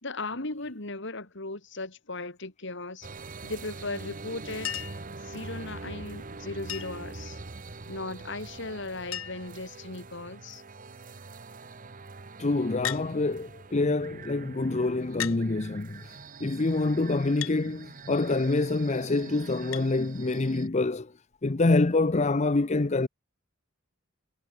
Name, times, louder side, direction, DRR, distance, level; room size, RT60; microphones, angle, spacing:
voice 1, 0.0-3.1 3.4-4.8 5.2-7.4 7.9-10.6, left 2 dB, 60° left, 3.4 m, -37 dB
sound 1, 3.0-20.7, right 3 dB, 40° right, 1.3 m, -44 dB
Chink clink, 4.6-5.1 6.7-7.1 8.5-8.6 8.8-8.9 9.1-9.6 10.3-10.7 12.8-13.1 14.1-14.2 15.2-15.4 17.4-17.6 19.7-19.9 21.3-21.4, left 11 dB, 80° left, 1.4 m, -35 dB
voice 2, 12.4-21.1 21.4-23.1, left 2 dB, 35° left, 0.7 m, -26 dB
head